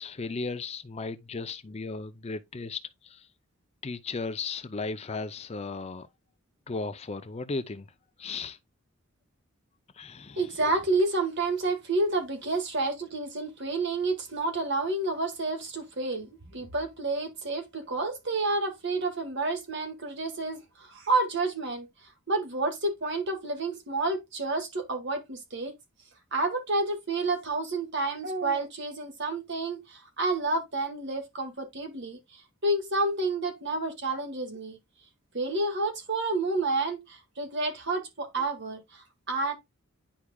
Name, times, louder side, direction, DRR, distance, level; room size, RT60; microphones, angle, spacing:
voice 1, 0.0-3.3 3.8-6.1 6.7-7.9 8.2-8.6 9.9-10.5, left 4 dB, 30° left, 0.5 m, -35 dB
voice 2, 10.4-21.9 22.3-25.7 26.3-32.2 32.6-34.8 35.3-39.5, right 2 dB, 55° right, 1.8 m, -29 dB
10.0 x 4.7 x 2.3 m
head